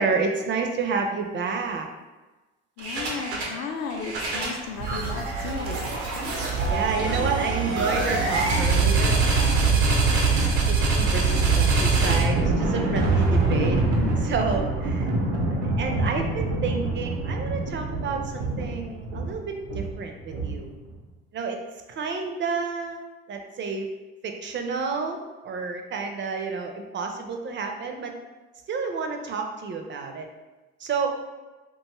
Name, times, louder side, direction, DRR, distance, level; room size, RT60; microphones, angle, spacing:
voice 1, 0.0-1.9 6.7-9.7 10.7-13.8 14.2-15.1 15.6-20.7 21.3-21.6 21.9-23.0 23.3-23.9 24.2-28.1 28.7-30.3 30.8-31.1, right 4 dB, 35° right, 4 dB, 0.4 m, -30 dB
voice 2, 2.8-5.9, left 5 dB, 55° left, 3 dB, 0.5 m, -34 dB
sound 1, 2.8-3.6 3.9-20.9, right 3 dB, 90° right, 0.6 m, -24 dB
2.6 x 2.3 x 2.9 m, 1.2 s
hypercardioid pair, 65°, 32 cm